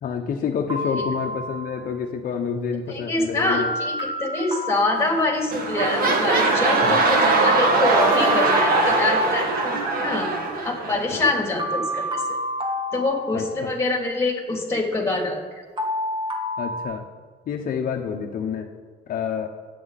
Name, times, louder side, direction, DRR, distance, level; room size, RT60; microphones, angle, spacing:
voice 1, 0.0-3.7 6.8-7.0 11.1-11.3 13.3-13.7 16.6-17.1 17.5-18.7 19.1-19.5, left 7 dB, 55° left, 2 dB, 1.2 m, -28 dB
sound 1, 0.7-1.8 3.5-5.8 7.5-9.8 11.6-13.9 15.8-16.8, equal, 30° right, 2.0 m, -29 dB
voice 2, 2.9-3.9 4.2-10.3 10.6-12.2 12.9-15.6, left 2 dB, 15° left, 1 dB, 3.1 m, -25 dB
sound 2, 4.9-5.2 5.5-11.3 12.0-12.1, right 3 dB, 60° right, 2.1 m, -21 dB
19.5 x 8.6 x 4.2 m, 1.5 s
cardioid pair, 110°, 17 cm